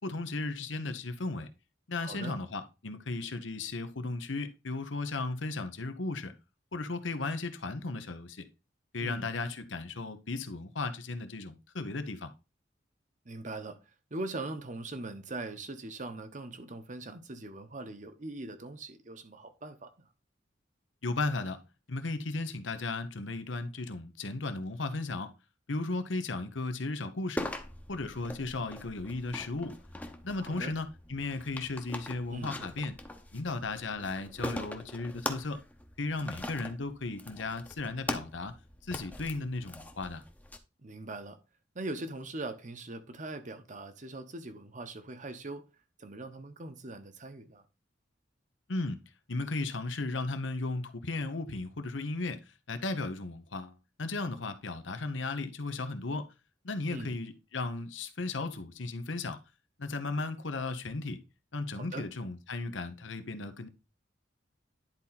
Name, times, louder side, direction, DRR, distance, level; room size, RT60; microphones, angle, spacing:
voice 1, 0.0-1.5 1.9-6.3 6.7-8.4 8.9-12.3 21.0-21.6 21.9-25.3 25.7-27.5 27.9-29.8 30.2-33.0 33.3-35.6 36.0-38.5 38.9-40.2 48.7-49.0 49.3-52.4 52.7-53.7 54.0-56.3 56.6-59.4 59.8-61.2 61.5-63.7, left 3 dB, 90° left, 1.0 m, -35 dB
voice 2, 2.0-2.4 9.0-9.3 13.2-13.8 14.1-19.9 30.4-30.7 32.3-32.7 40.8-41.4 41.7-45.6 46.0-47.7 56.9-57.2 61.7-62.1, right 2 dB, 40° right, 1.0 m, -41 dB
sound 1, 27.4-40.6, left 1 dB, 10° left, 0.8 m, -42 dB
10.5 x 4.3 x 4.0 m
head